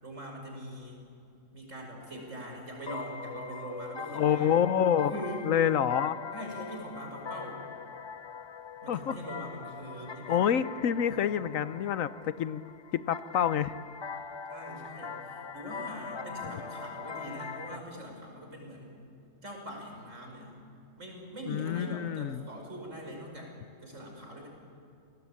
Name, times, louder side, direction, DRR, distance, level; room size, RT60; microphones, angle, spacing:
voice 1, 0.0-1.0 1.5-4.6 5.0-5.4 6.3-7.6 8.8-10.4 11.0-11.3 14.5-18.9 19.4-20.5 21.0-23.5 23.8-24.5, equal, 70° right, 1 dB, 5.8 m, -42 dB
sound 1, 2.0-17.8, left 5 dB, 40° left, 0.3 m, -42 dB
voice 2, 4.1-5.1 5.4-6.2 8.9-9.2 10.3-12.6 12.9-13.7 21.5-22.5, left 9 dB, 85° left, 14 dB, 1.2 m, -27 dB
29.0 x 19.0 x 8.6 m, 2.6 s
omnidirectional pair, 1.3 m